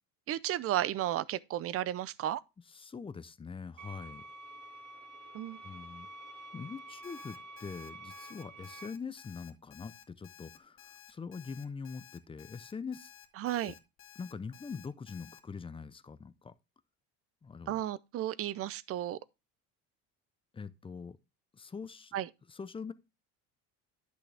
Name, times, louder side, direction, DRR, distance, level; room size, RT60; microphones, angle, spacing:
voice 1, 0.3-2.4 5.3-5.6 13.4-13.7 17.7-19.2 22.1-22.3, right 13 dB, 40° right, 0.6 m, -33 dB
voice 2, 2.7-4.3 5.6-6.1 6.5-13.1 13.6-13.7 14.2-16.5 17.4-17.8 20.5-21.2 21.5-22.2 22.5-22.9, left 5 dB, 15° left, 0.5 m, -43 dB
sound 1, 3.8-8.9, right 1 dB, 85° right, 3.5 m, -49 dB
Alarm, 7.0-15.4, left 9 dB, 35° left, 1.6 m, -55 dB
10.5 x 6.3 x 3.3 m
cardioid pair, 130°, 35 cm